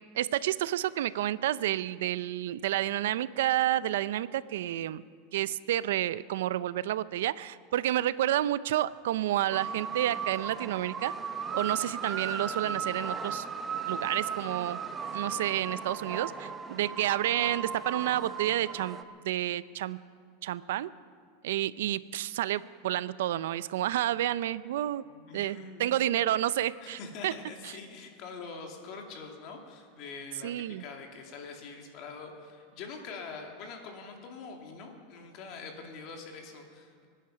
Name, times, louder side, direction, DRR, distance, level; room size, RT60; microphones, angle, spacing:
voice 1, 0.1-5.0 5.3-11.1 11.5-13.4 13.9-14.8 15.1-19.0 19.2-20.0 20.4-20.9 21.4-25.0 25.3-27.3 27.6-27.7 30.4-30.8, right 13 dB, 80° right, 17 dB, 0.5 m, -30 dB
sound 1, 9.5-19.0, right 6 dB, 20° right, 0.7 m, -36 dB
voice 2, 25.0-25.8 26.8-37.1, left 4 dB, 45° left, 2 dB, 2.5 m, -44 dB
24.0 x 10.0 x 5.7 m, 2.1 s
supercardioid pair, 145°, 0 cm